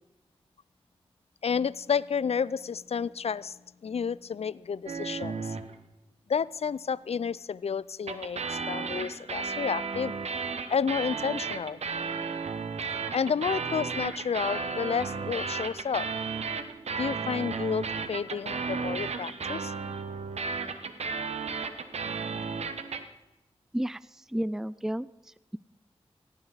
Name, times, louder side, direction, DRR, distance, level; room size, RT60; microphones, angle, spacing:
voice 1, 1.4-5.6 6.3-10.1 10.7-11.8 13.1-16.1 17.0-19.7, left 6 dB, 75° left, 20 dB, 0.5 m, -31 dB
sound 1, 4.9-5.7 8.1-23.0, right 5 dB, 85° right, 1.0 m, -34 dB
voice 2, 23.7-25.1, right 1 dB, 5° right, 19 dB, 0.4 m, -31 dB
18.0 x 16.5 x 4.1 m, 1.0 s
cardioid pair, 45°, 11 cm